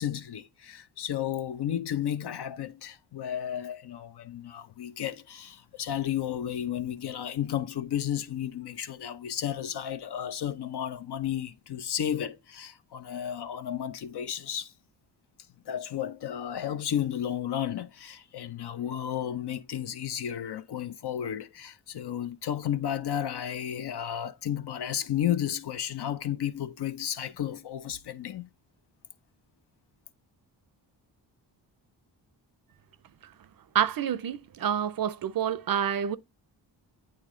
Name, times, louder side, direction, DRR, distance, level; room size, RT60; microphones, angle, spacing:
voice 1, 0.0-14.7 15.7-28.5, left 10 dB, 60° left, 0.7 m, -33 dB
voice 2, 33.7-36.2, right 9 dB, 50° right, 0.5 m, -28 dB
8.6 x 3.2 x 3.7 m
cardioid pair, 60°, 44 cm